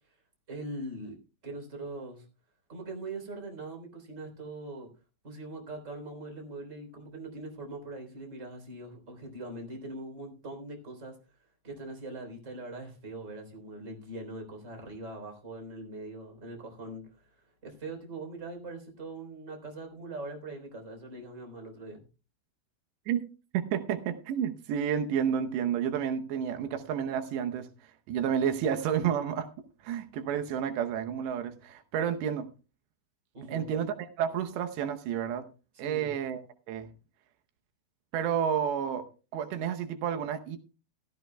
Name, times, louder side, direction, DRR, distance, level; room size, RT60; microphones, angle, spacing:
voice 1, 0.5-1.2 1.4-2.3 2.7-4.9 5.2-11.2 11.6-22.0 33.3-33.7 35.7-36.1, right 2 dB, 20° right, 3.4 m, -42 dB
voice 2, 23.5-27.7 28.1-29.5 29.8-32.5 33.5-35.5 35.8-36.4 36.7-36.9 38.1-39.1 39.3-40.6, right 8 dB, 80° right, 3.1 m, -30 dB
15.5 x 15.0 x 2.2 m
omnidirectional pair, 4.9 m